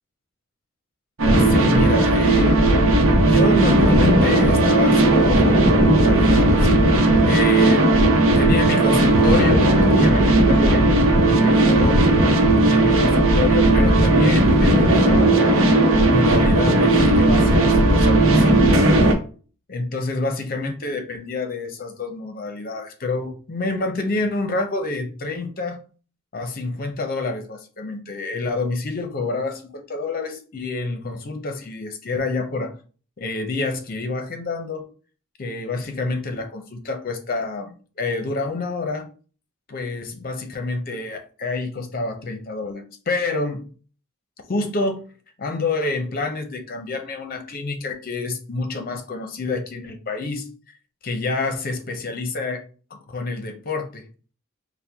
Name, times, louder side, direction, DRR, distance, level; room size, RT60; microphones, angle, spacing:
voice 1, 1.2-2.6 3.3-7.9 8.4-12.1 12.6-15.7 16.1-18.7 19.7-25.8 26.3-32.7 33.2-34.9 35.4-39.1 39.7-43.6 44.5-45.0 45.4-50.5 51.0-52.6 53.1-54.0, left 3 dB, 45° left, 0.6 m, -28 dB
sound 1, 1.2-19.1, right 1 dB, 85° right, 0.8 m, -16 dB
4.3 x 2.1 x 3.4 m
head